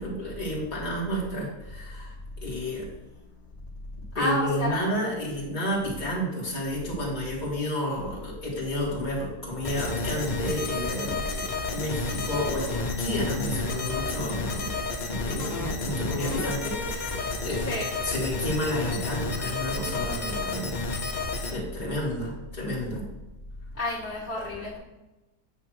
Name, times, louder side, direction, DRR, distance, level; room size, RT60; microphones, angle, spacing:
voice 1, 0.0-2.1 2.4-2.9 4.2-11.4 11.7-14.7 15.1-17.7 18.0-20.8 21.5-23.0, equal, 25° left, -5 dB, 2.0 m, -31 dB
voice 2, 4.1-4.8 17.7-17.9 23.7-24.8, left 1 dB, 10° left, -9 dB, 1.9 m, -29 dB
sound 1, 9.6-21.5, left 3 dB, 60° left, 0.4 m, -31 dB
8.7 x 3.1 x 6.2 m, 1.0 s
omnidirectional pair, 1.8 m